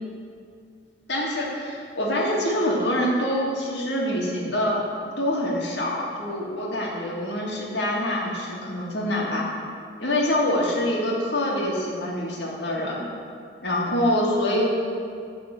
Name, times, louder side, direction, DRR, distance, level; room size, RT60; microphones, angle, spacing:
voice 1, 1.1-4.8 5.2-9.5 10.0-13.1 13.6-14.7, left 1 dB, 80° left, -3 dB, 2.0 m, -25 dB
11.5 x 4.2 x 7.7 m, 2.3 s
head